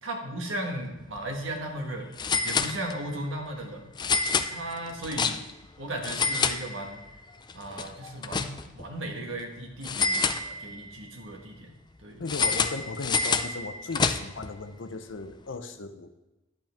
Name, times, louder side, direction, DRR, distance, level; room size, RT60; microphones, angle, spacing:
voice 1, 0.0-2.1 2.4-3.9 4.5-5.4 5.8-7.0 7.5-11.7 12.0-12.2, right 1 dB, 80° right, 2 dB, 1.5 m, -36 dB
sound 1, 1.0-1.2 1.5-1.6 2.2-3.2 4.0-5.7 6.0-7.2 7.5-8.9 9.8-10.9 12.3-14.5, left 4 dB, 20° left, 0.4 m, -28 dB
voice 2, 12.2-16.2, left 3 dB, 70° left, 9 dB, 0.7 m, -37 dB
10.5 x 8.1 x 3.5 m, 1.0 s
head